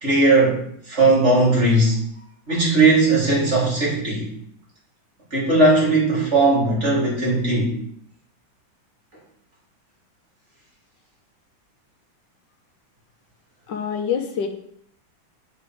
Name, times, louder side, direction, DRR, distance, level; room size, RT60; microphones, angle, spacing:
voice 1, 0.0-0.6 0.9-2.0 2.5-4.3 5.3-7.8, right 2 dB, 35° right, -5 dB, 3.1 m, -18 dB
voice 2, 13.7-14.5, left 7 dB, 70° left, 5 dB, 1.6 m, -25 dB
9.1 x 5.0 x 4.7 m, 0.67 s
omnidirectional pair, 2.2 m